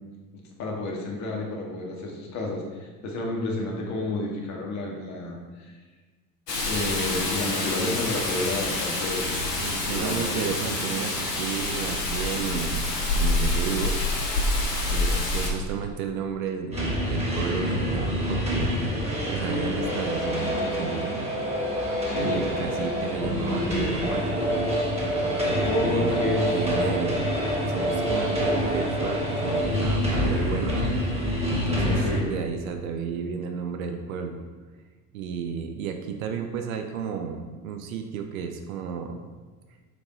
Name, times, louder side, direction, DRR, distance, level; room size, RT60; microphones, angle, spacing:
voice 1, 0.3-5.8 6.5-9.4 9.8-10.5 22.1-22.5 25.3-26.5 31.7-32.3, left 2 dB, 35° left, -1 dB, 0.9 m, -31 dB
Rain, 6.5-15.5, left 2 dB, 85° left, 0.7 m, -27 dB
voice 2, 9.6-12.9 13.1-14.0 14.9-18.8 19.3-21.3 22.2-24.4 25.4-26.2 26.5-27.3 27.7-30.8 31.5-34.4 35.1-39.3, right 6 dB, 60° right, 6 dB, 0.5 m, -32 dB
sound 1, 16.7-32.2, equal, 15° right, 1.2 m, -26 dB
4.5 x 2.6 x 3.8 m, 1.3 s
figure-of-eight pair, 65°, 47 cm